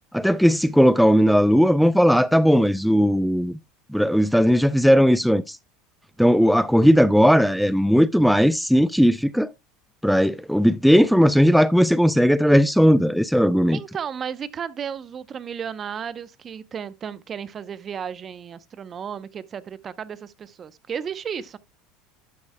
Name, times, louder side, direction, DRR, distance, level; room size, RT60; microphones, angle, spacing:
voice 1, 0.1-3.5 3.9-5.6 6.2-9.5 10.0-13.8, equal, ahead, 0.4 m, -17 dB
voice 2, 13.7-21.6, right 7 dB, 35° right, 0.7 m, -34 dB
12.0 x 8.2 x 2.2 m
supercardioid pair, 100°, 0 cm